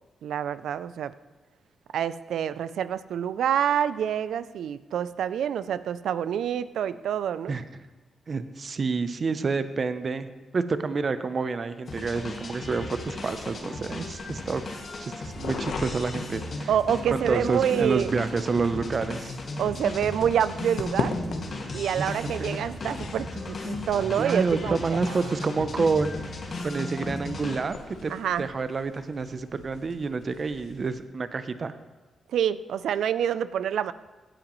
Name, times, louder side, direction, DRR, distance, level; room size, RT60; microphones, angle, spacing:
voice 1, 0.2-1.1 1.9-7.5 16.7-18.1 19.6-21.1 21.7-25.2 28.1-28.5 32.3-33.9, right 9 dB, 80° right, 15 dB, 0.4 m, -27 dB
voice 2, 8.3-10.3 10.5-14.6 15.0-16.7 17.1-19.4 21.9-22.6 24.2-26.2 26.6-27.8 28.0-28.1 28.4-31.7, right 4 dB, 45° right, 11 dB, 0.7 m, -28 dB
sound 1, 11.9-28.0, left 2 dB, 50° left, 1.9 m, -36 dB
sound 2, 13.2-31.0, left 4 dB, 75° left, 1.1 m, -41 dB
16.5 x 9.0 x 3.1 m, 1.2 s
cardioid pair, 65°, 0 cm